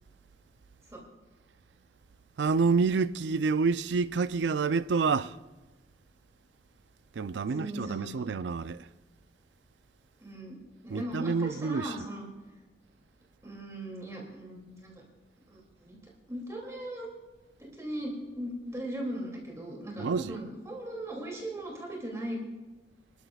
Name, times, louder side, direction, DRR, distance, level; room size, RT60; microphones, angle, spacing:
voice 1, 2.4-5.4 7.1-8.9 10.9-11.9 20.0-20.4, right 4 dB, 85° right, 0.4 m, -28 dB
voice 2, 7.3-8.3 10.2-10.6 10.8-12.2 13.4-15.0 15.5-16.0 16.3-17.1 17.6-22.4, right 1 dB, 15° right, 2.6 m, -38 dB
25.0 x 13.0 x 2.4 m
head